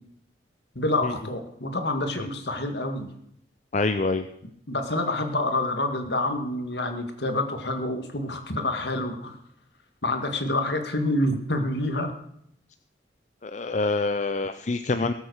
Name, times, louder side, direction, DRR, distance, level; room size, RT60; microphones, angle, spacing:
voice 1, 0.8-3.1 4.7-9.4 10.0-12.1, left 1 dB, 60° left, 5 dB, 2.0 m, -27 dB
voice 2, 3.7-4.3 13.4-15.1, left 3 dB, 40° left, 9 dB, 0.5 m, -26 dB
19.0 x 8.1 x 6.5 m, 0.71 s
head